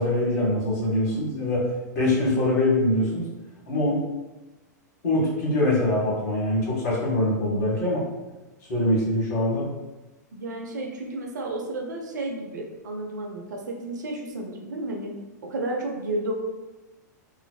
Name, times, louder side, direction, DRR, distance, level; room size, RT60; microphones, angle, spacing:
voice 1, 0.0-1.7 1.9-3.2 3.7-4.0 5.0-8.0 8.7-9.7, left 1 dB, 65° left, -5 dB, 1.3 m, -23 dB
voice 2, 10.3-15.1 15.4-16.3, right 2 dB, 70° right, 1 dB, 0.5 m, -32 dB
3.2 x 2.0 x 2.2 m, 1.1 s
hypercardioid pair, 105°, 10 cm